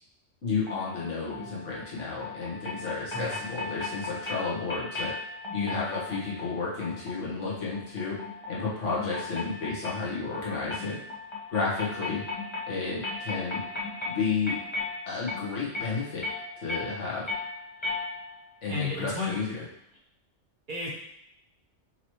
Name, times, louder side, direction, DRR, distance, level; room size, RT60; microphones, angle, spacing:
voice 1, 0.4-5.1 5.5-8.2 8.5-11.0 11.5-12.2 12.7-13.6 14.1-14.6 15.1-16.2 16.6-17.3 18.6-19.6, left 4 dB, 80° left, -6 dB, 1.6 m, -32 dB
sound 1, 0.7-18.5, left 3 dB, 25° left, 0.8 m, -37 dB
voice 2, 18.7-19.3 20.7-20.9, left 3 dB, 45° right, -4 dB, 1.1 m, -32 dB
5.7 x 2.9 x 3.1 m, 0.77 s
omnidirectional pair, 1.2 m